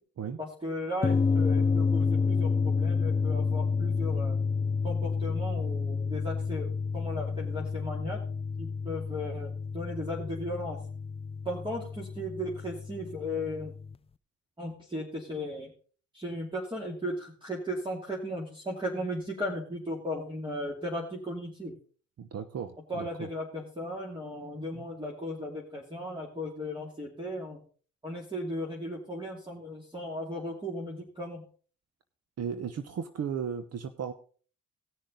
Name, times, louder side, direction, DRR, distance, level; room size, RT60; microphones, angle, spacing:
voice 1, 0.4-4.4 4.8-8.2 8.6-10.8 11.4-13.7 14.6-15.7 16.1-21.8 22.9-27.6 28.0-31.4, left 1 dB, 15° right, -3 dB, 2.7 m, -36 dB
sound 1, 1.0-13.9, left 5 dB, 20° left, 0.4 m, -30 dB
voice 2, 22.2-23.3 24.7-24.8 32.4-34.1, right 7 dB, 55° right, 10 dB, 1.0 m, -35 dB
18.0 x 6.4 x 3.9 m, 0.41 s
cardioid pair, 90°, 30 cm